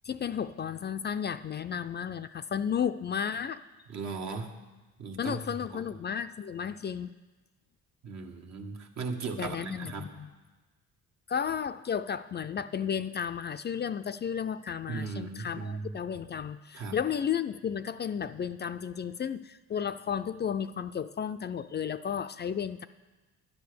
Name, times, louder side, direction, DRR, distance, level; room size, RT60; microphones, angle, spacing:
voice 1, 0.0-3.6 5.2-7.1 9.4-10.3 11.3-22.9, left 8 dB, 35° left, 11 dB, 0.4 m, -33 dB
voice 2, 3.9-4.5 5.0-5.8 8.0-10.1 14.9-15.9 16.7-17.0, right 4 dB, 65° right, 3 dB, 1.5 m, -37 dB
10.5 x 9.6 x 6.7 m, 1.2 s
cardioid pair, 90°, 30 cm